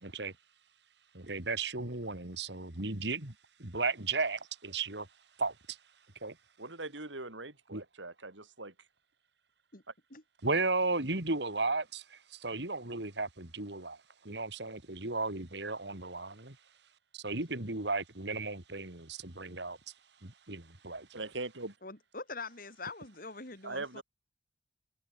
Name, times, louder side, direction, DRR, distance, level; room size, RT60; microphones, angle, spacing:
voice 1, 0.0-0.3 1.1-3.3 3.6-5.1 5.4-5.8 6.2-6.3 7.7-7.8 10.4-14.0 14.2-16.6 17.1-19.8 20.2-21.1, right 3 dB, 65° right, 3.1 m, -35 dB
voice 2, 6.6-8.7 21.1-21.7 23.6-24.0, right 2 dB, 90° right, 5.1 m, -41 dB
voice 3, 21.8-24.0, left 3 dB, 50° left, 5.0 m, -44 dB
head